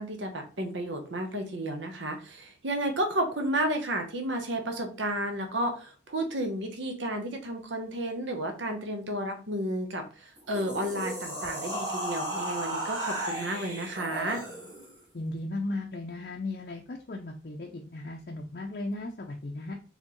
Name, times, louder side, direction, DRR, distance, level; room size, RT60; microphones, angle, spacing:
voice 1, 0.0-14.4, right 1 dB, 75° right, 4 dB, 1.0 m, -32 dB
sound 1, 10.4-15.0, right 1 dB, 20° right, 1.4 m, -35 dB
voice 2, 15.1-19.7, left 2 dB, 50° left, 1 dB, 0.5 m, -36 dB
4.3 x 3.5 x 3.0 m, 0.37 s
head